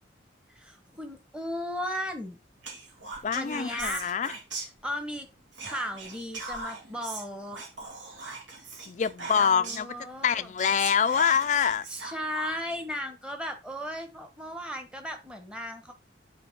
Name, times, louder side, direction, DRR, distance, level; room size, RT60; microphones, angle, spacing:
voice 1, 0.5-2.4 3.3-4.0 4.8-5.3 5.6-7.6 9.3-10.5 11.9-15.9, equal, 5° right, 1.1 m, -36 dB
Whispering, 2.6-5.2 5.5-10.0 10.3-10.4 10.6-12.8, right 3 dB, 90° right, 2.4 m, -40 dB
voice 2, 3.2-4.3 8.9-10.0 10.2-11.9, left 7 dB, 40° left, 0.3 m, -25 dB
9.4 x 4.5 x 3.6 m
head